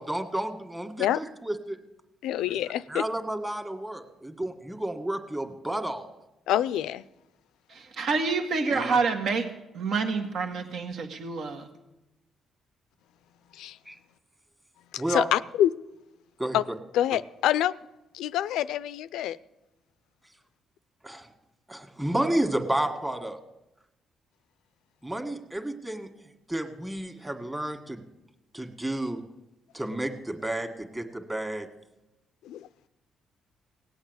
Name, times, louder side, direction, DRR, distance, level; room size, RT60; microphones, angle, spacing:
voice 1, 0.0-1.8 2.5-2.6 2.9-6.1 8.7-9.0 13.9-14.0 15.0-15.3 16.4-16.6 21.0-21.3 21.7-23.4 25.0-26.1 26.5-28.0 28.5-29.2 29.7-31.7, right 1 dB, 10° right, 6 dB, 1.8 m, -31 dB
voice 2, 2.2-3.0 6.5-7.0 13.6-13.8 14.9-15.7 16.5-16.6 16.9-17.7 18.1-19.4 32.5-32.7, left 12 dB, 90° left, 17 dB, 0.5 m, -26 dB
voice 3, 7.7-9.5 9.7-11.7, right 4 dB, 65° right, 5 dB, 1.8 m, -28 dB
18.0 x 8.3 x 8.1 m, 0.95 s
cardioid pair, 90°, 0 cm